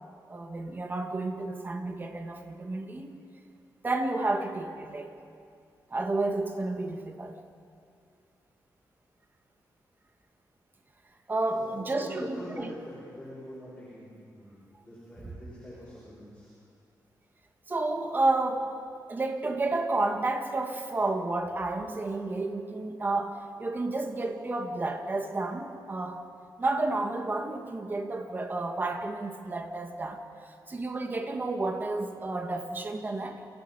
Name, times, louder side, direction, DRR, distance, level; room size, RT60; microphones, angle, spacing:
voice 1, 0.3-3.1 3.8-5.1 5.9-7.3 11.3-12.7 15.2-15.4 17.7-18.7 19.1-26.2 26.6-30.2 30.7-33.5, right 2 dB, 25° right, 5 dB, 1.7 m, -31 dB
voice 2, 11.6-16.5, left 1 dB, 15° left, -9 dB, 6.7 m, -44 dB
28.5 x 16.5 x 5.7 m, 2.4 s
wide cardioid pair, 135°, 7 cm